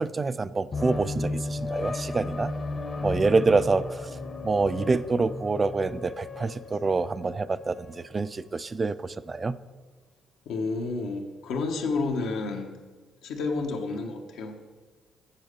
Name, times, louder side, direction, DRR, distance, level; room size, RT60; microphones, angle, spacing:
voice 1, 0.0-2.5 3.0-4.1 4.4-9.6, right 3 dB, 30° right, 14 dB, 0.3 m, -26 dB
sound 1, 0.7-8.0, left 2 dB, 40° left, 0.8 m, -34 dB
voice 2, 10.5-12.7 13.2-14.6, left 3 dB, 85° left, 3 dB, 1.2 m, -30 dB
7.4 x 7.4 x 6.7 m, 1.4 s
cardioid pair, 90°, 0 cm